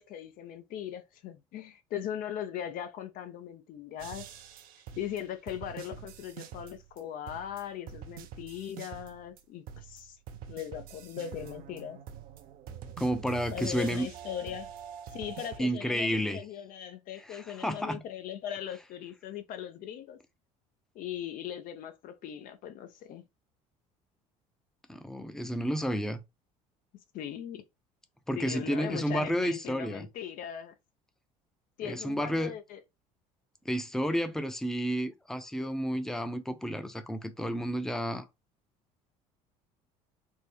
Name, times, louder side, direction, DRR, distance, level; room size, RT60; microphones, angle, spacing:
voice 1, 0.0-4.4 4.9-10.2 10.5-12.0 13.5-14.7 15.1-20.2 20.9-23.2 27.1-27.6 28.3-30.7 31.8-32.8, left 10 dB, 55° left, 0.5 m, -39 dB
sound 1, 4.0-7.0 7.3-9.4 9.7-15.6, right 9 dB, 60° right, 0.6 m, -46 dB
voice 2, 13.0-14.1 15.6-16.4 17.2-18.0 24.9-26.2 28.3-30.1 31.8-32.5 33.7-38.3, equal, 5° left, 0.5 m, -31 dB
3.5 x 2.0 x 3.3 m
hypercardioid pair, 70°, 17 cm